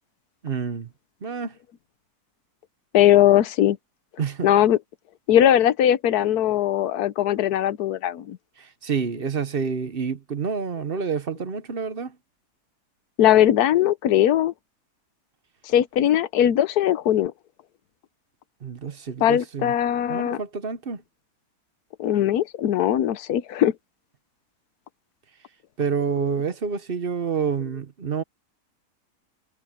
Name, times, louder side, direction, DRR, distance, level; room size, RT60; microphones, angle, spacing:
voice 1, 0.4-0.9 1.2-1.6 4.2-4.5 8.6-12.2 18.6-19.7 20.1-21.0 25.8-28.2, right 6 dB, 40° right, 1.1 m, -28 dB
voice 2, 2.9-3.8 4.4-4.8 5.3-8.4 13.2-14.5 15.7-17.3 19.2-20.4 22.0-23.7, left 11 dB, 90° left, 1.3 m, -20 dB
omnidirectional pair, 1.6 m